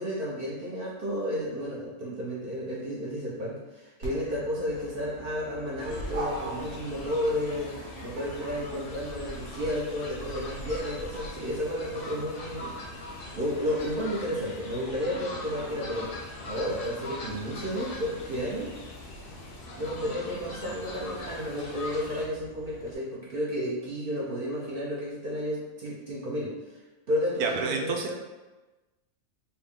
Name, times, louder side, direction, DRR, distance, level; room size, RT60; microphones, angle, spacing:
voice 1, 0.0-12.7 13.3-16.1 16.4-18.7 19.8-26.8 27.1-28.1, equal, 55° right, -5 dB, 0.7 m, -32 dB
Dog, 4.0-22.9, right 1 dB, 70° right, 1.6 m, -45 dB
Fowl, 5.8-22.3, left 2 dB, 55° left, 0.6 m, -41 dB
voice 2, 27.4-28.1, right 5 dB, 90° right, 2 dB, 1.1 m, -29 dB
4.1 x 2.2 x 3.5 m, 1.1 s
omnidirectional pair, 1.6 m